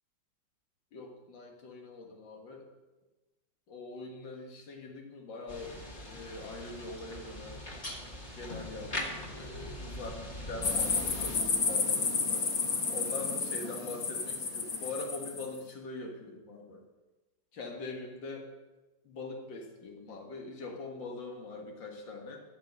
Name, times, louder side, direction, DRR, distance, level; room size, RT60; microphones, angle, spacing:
voice 1, 0.9-2.7 3.7-5.8 6.0-7.6 8.3-12.4 12.9-16.8 17.5-18.5 19.0-22.4, left 3 dB, 80° left, 1 dB, 2.3 m, -43 dB
sound 1, 5.5-11.4, left 1 dB, 25° left, 1.4 m, -41 dB
sound 2, 10.6-15.4, left 5 dB, 55° left, 1.5 m, -31 dB
13.0 x 5.1 x 6.5 m, 1.1 s
omnidirectional pair, 2.0 m